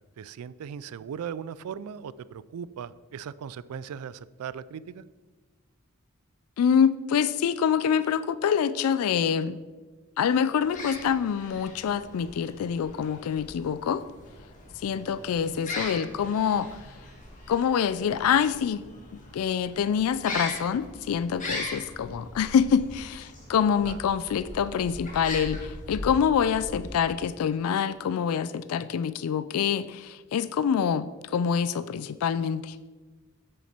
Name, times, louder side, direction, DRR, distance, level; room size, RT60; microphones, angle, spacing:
voice 1, 0.0-5.0 23.8-24.0, right 7 dB, 80° right, 18 dB, 0.3 m, -38 dB
voice 2, 6.6-9.6 10.2-14.0 14.8-16.7 17.5-18.8 19.1-32.8, left 7 dB, 75° left, 15 dB, 0.3 m, -26 dB
sound 1, 10.6-27.3, left 2 dB, 35° left, 1.6 m, -40 dB
7.8 x 6.6 x 4.3 m, 1.3 s
head